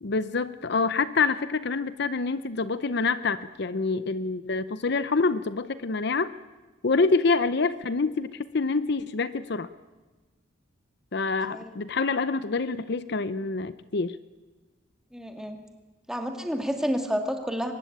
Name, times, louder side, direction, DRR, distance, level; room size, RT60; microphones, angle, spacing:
voice 1, 0.0-6.3 6.8-9.7 11.1-14.2, left 4 dB, 55° left, 14 dB, 0.7 m, -26 dB
voice 2, 15.1-15.6 16.1-17.7, equal, 5° right, 4 dB, 2.2 m, -29 dB
23.5 x 20.5 x 8.7 m, 1.3 s
head